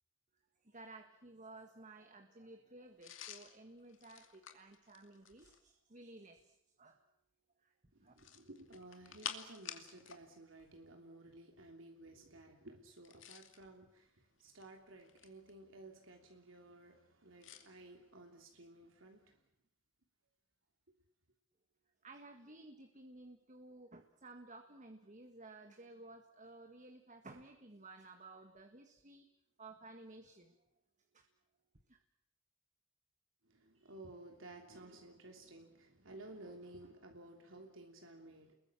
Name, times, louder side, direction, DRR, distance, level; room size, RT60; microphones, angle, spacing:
voice 1, 0.6-7.0 7.6-7.8 8.0-8.1 22.0-29.3 29.6-30.6 31.1-31.3 31.9-32.0, right 2 dB, 40° right, 1.8 m, -55 dB
sound 1, 3.0-5.7 8.1-10.2 10.5-10.7 12.9-13.6 14.4-15.5 17.4-17.7, left 8 dB, 70° left, 2.4 m, -50 dB
voice 2, 7.9-19.4 20.9-21.0 33.4-38.5, right 2 dB, 80° right, 3.2 m, -55 dB
30.0 x 21.5 x 7.2 m
head